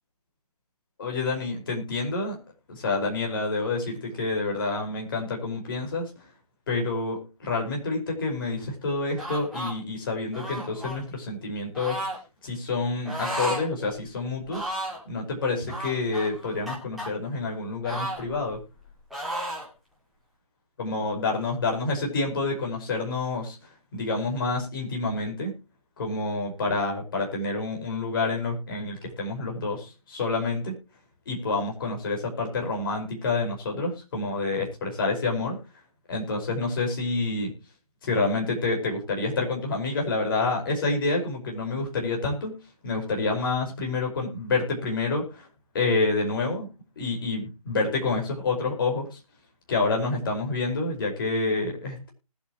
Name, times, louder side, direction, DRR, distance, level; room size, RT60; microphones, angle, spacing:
voice 1, 1.0-2.4 2.7-6.1 6.7-12.0 12.4-14.7 15.1-18.6 20.8-23.6 23.9-25.5 26.0-30.7 31.3-35.6 36.1-37.5 38.0-42.5 42.8-45.5 45.7-46.7 47.0-49.1 49.7-52.1, left 3 dB, 35° left, 0 dB, 5.1 m, -28 dB
sound 1, 9.2-9.7 10.3-11.0 11.7-12.2 13.0-13.7 14.0-14.1 14.5-15.0 15.7-17.1 17.8-18.8 19.1-19.7, right 1 dB, ahead, 2.2 m, -33 dB
20.0 x 8.5 x 3.0 m, 0.29 s
figure-of-eight pair, 145°, 20 cm